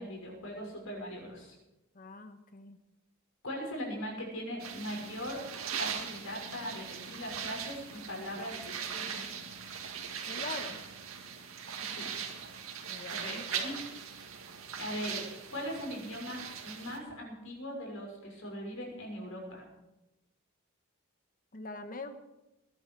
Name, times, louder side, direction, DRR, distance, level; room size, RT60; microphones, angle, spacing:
voice 1, 0.0-1.5 3.4-5.4 5.8-9.3 11.9-12.1 13.1-13.8 14.8-15.2 15.5-19.7, equal, 80° left, 0 dB, 6.0 m, -40 dB
voice 2, 1.9-2.8 10.3-10.8 12.9-13.5 21.5-22.2, left 3 dB, 40° left, 9 dB, 1.3 m, -43 dB
sound 1, 4.6-17.0, right 7 dB, 85° right, 2.2 m, -40 dB
21.5 x 11.5 x 4.8 m, 0.99 s
head